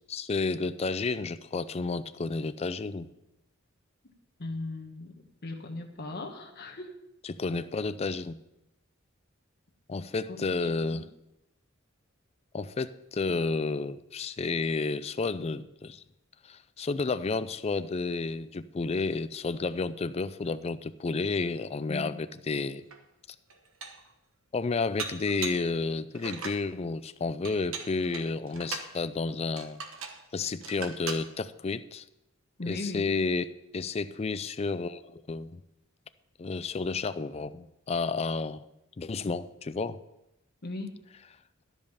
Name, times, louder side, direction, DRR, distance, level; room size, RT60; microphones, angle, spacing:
voice 1, 0.1-3.1 7.2-8.4 9.9-11.0 12.5-16.0 16.4-22.8 24.5-29.8 30.3-32.0 32.7-35.6 36.4-38.6 39.0-40.0, left 4 dB, 30° left, 14 dB, 0.4 m, -31 dB
voice 2, 4.4-5.1 5.4-6.9 10.3-11.0 21.9-22.1 32.6-33.1 40.6-40.9, left 2 dB, 50° left, 3 dB, 1.2 m, -38 dB
Dishes pots and pans, 22.9-23.0 23.5-24.1 25.0-25.7 26.1-26.6 27.4-28.9 29.6-30.2 30.6-31.3, right 5 dB, 75° right, 1.2 m, -39 dB
12.5 x 5.3 x 6.8 m, 0.88 s
head